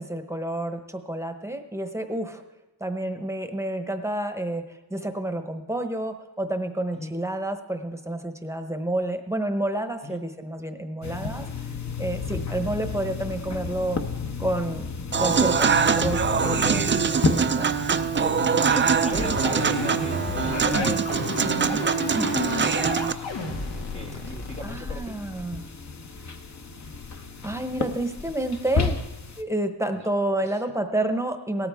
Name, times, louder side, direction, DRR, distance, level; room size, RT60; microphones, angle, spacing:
voice 1, 0.0-2.4 2.8-11.7 12.0-14.0 14.4-14.9 15.2-16.9 17.3-17.7 20.7-21.0 21.7-21.8 22.1-22.3 24.6-25.7 27.4-29.0 29.4-31.7, right 1 dB, 5° right, 6 dB, 0.9 m, -29 dB
sound 1, 11.0-29.4, left 4 dB, 45° left, 0.9 m, -33 dB
Human voice / Acoustic guitar / Piano, 15.1-23.1, right 6 dB, 30° right, 0.4 m, -23 dB
voice 2, 18.7-22.9 23.9-25.2 29.9-30.1 30.4-30.6, left 2 dB, 15° left, 2 dB, 0.6 m, -40 dB
sound 2, 19.1-24.8, left 3 dB, 85° left, 2.0 m, -32 dB
18.0 x 13.5 x 3.5 m, 1.1 s
wide cardioid pair, 160°, 41 cm